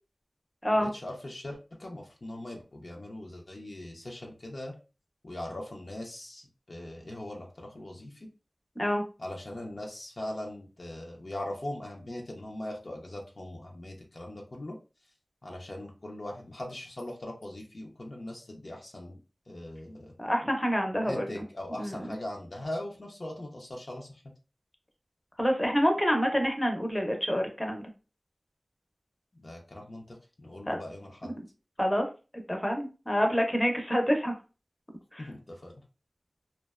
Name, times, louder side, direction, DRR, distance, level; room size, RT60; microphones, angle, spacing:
voice 1, 0.7-4.7 5.2-8.3 9.2-14.8 15.4-19.2 19.5-20.1 21.0-24.2 29.3-31.3 35.2-35.7, left 1 dB, 60° left, 0 dB, 0.5 m, -40 dB
voice 2, 20.2-21.3 21.8-22.1 25.4-27.8 30.7-30.8 31.8-32.1 32.5-34.3 35.1-35.3, equal, 20° left, 3 dB, 0.6 m, -27 dB
2.6 x 2.1 x 2.3 m, 0.33 s
wide cardioid pair, 50°, 0 cm